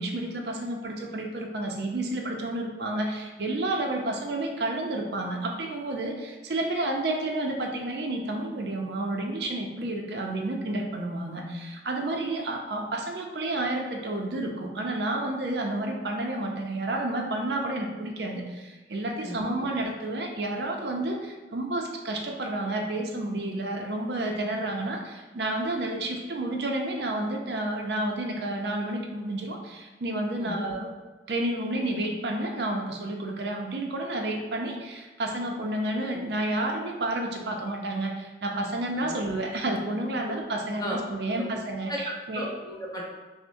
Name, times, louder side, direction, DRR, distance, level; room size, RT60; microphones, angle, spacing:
voice 1, 0.0-30.9 31.3-42.5, right 1 dB, 70° right, 1 dB, 0.5 m, -30 dB
voice 2, 19.2-19.7 30.4-30.7 39.0-39.2 40.8-41.0 41.3-41.5 41.9-43.1, equal, 20° left, -4 dB, 0.7 m, -35 dB
6.1 x 2.1 x 2.6 m, 1.3 s
head